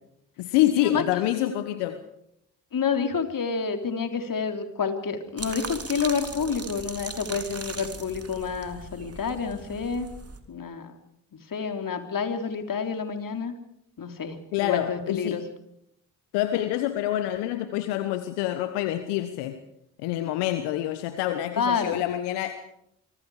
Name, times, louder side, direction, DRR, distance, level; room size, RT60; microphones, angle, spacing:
voice 1, 0.4-2.0 14.5-15.4 16.3-19.6 20.0-22.5, left 13 dB, 80° left, 9 dB, 1.3 m, -26 dB
voice 2, 2.7-10.1 10.5-10.9 11.5-13.5 14.0-15.4 21.6-22.0, left 6 dB, 50° left, 6 dB, 3.6 m, -29 dB
sound 1, 5.4-10.4, right 4 dB, 35° right, 3.5 m, -39 dB
25.5 x 25.0 x 5.0 m, 0.76 s
hypercardioid pair, 40°, 41 cm